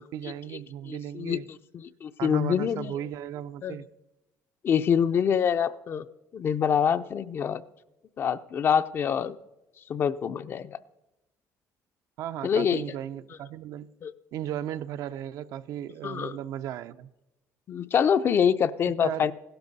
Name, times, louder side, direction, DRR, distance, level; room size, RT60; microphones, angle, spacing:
voice 1, 0.0-1.4 2.2-3.9 12.2-13.9 14.3-17.1 19.0-19.3, right 11 dB, 65° right, 0.5 m, -36 dB
voice 2, 0.9-2.9 3.6-3.8 4.6-6.1 6.3-7.6 8.2-9.4 9.9-10.8 12.4-12.8 14.0-14.1 16.0-16.4 17.7-19.3, left 7 dB, 35° left, 0.4 m, -25 dB
16.0 x 12.5 x 4.0 m
cardioid pair, 160°, 7 cm